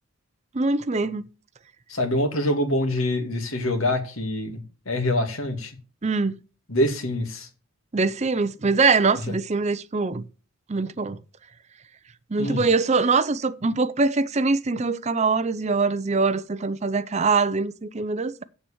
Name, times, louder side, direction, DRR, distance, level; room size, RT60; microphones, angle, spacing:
voice 1, 0.5-1.2 6.0-6.4 7.9-10.2 10.7-11.2 12.3-18.4, right 4 dB, 30° right, 0.5 m, -23 dB
voice 2, 1.9-5.8 6.7-7.5 9.3-9.4 12.4-12.7, left 1 dB, 70° left, 2.5 m, -25 dB
7.8 x 7.3 x 7.1 m
head